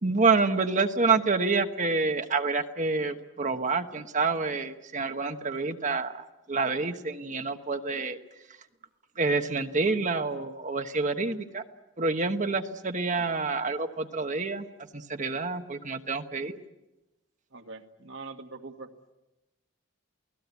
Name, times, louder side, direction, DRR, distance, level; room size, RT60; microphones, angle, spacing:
voice 1, 0.0-6.1 6.5-8.2 9.2-11.6 12.0-14.6 14.9-16.6, right 4 dB, 35° right, 7 dB, 1.1 m, -27 dB
voice 2, 17.5-18.9, right 3 dB, 60° right, 5 dB, 1.9 m, -43 dB
29.0 x 19.0 x 8.3 m, 1.0 s
head